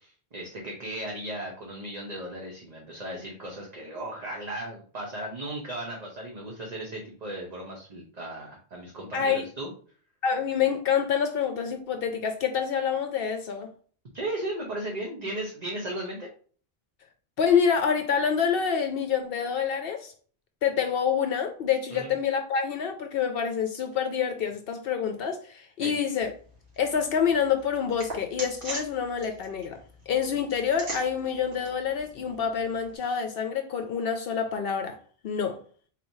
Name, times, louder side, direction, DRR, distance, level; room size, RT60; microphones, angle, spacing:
voice 1, 0.0-9.7 14.1-16.3 21.9-22.1 25.8-25.9, right 1 dB, 45° right, 0.9 m, -36 dB
voice 2, 9.1-9.4 10.2-13.7 17.4-20.1 20.6-26.3 26.8-29.8 30.1-35.0 35.2-35.6, left 7 dB, 65° left, 0.7 m, -27 dB
sound 1, 26.2-33.0, right 2 dB, 85° right, 1.9 m, -43 dB
4.2 x 3.1 x 2.7 m
omnidirectional pair, 1.1 m